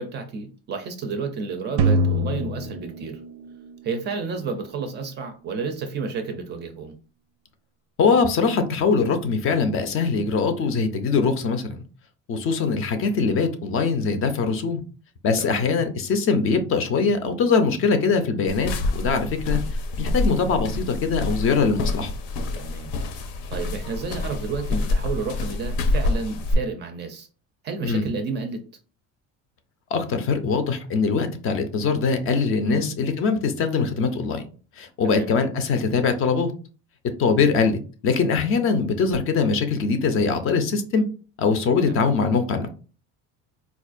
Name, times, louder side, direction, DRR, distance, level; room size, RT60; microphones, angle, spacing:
voice 1, 0.0-3.2 3.8-7.0 15.4-15.7 22.5-22.9 23.5-27.3 27.6-28.6 32.6-32.9 35.0-35.3 41.9-42.1, right 4 dB, 30° right, 7 dB, 0.4 m, -31 dB
sound 1, 1.8-4.0, right 1 dB, 90° right, 0.5 m, -24 dB
voice 2, 8.0-11.8 12.3-14.8 15.2-19.6 20.0-22.1 27.8-28.1 29.9-34.4 34.8-36.5 37.2-37.8 38.0-41.0 41.4-42.7, left 4 dB, 40° left, 8 dB, 0.5 m, -22 dB
sound 2, 18.5-26.5, left 2 dB, 80° left, 0.7 m, -27 dB
4.3 x 2.4 x 2.4 m, 0.37 s
cardioid pair, 170°, 35 cm